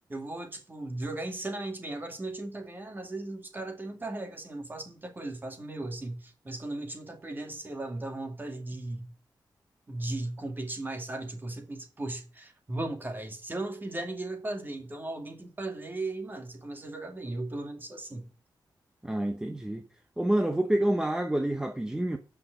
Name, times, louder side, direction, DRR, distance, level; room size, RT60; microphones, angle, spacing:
voice 1, 0.1-9.1 9.9-18.3, right 2 dB, 25° right, 2.3 m, -37 dB
voice 2, 19.0-19.8 20.2-22.2, right 1 dB, 10° right, 0.9 m, -27 dB
8.6 x 5.8 x 8.1 m
wide cardioid pair, 145°, 8 cm